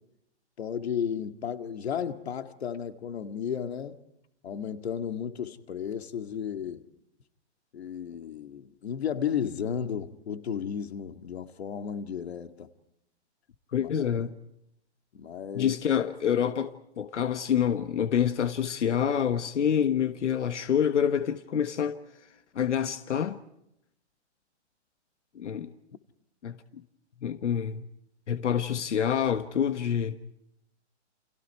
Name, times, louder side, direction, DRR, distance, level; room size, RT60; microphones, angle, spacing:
voice 1, 0.6-4.0 4.4-6.8 7.7-12.7 13.8-13.9 14.2-14.3 15.1-15.8, left 8 dB, 65° left, 2.0 m, -33 dB
voice 2, 13.7-14.4 15.5-22.0 22.5-23.4 25.3-25.7 26.4-26.6 27.2-27.8 28.3-30.2, left 8 dB, 90° left, 1.5 m, -27 dB
30.0 x 29.0 x 4.7 m
hypercardioid pair, 175°, 35 cm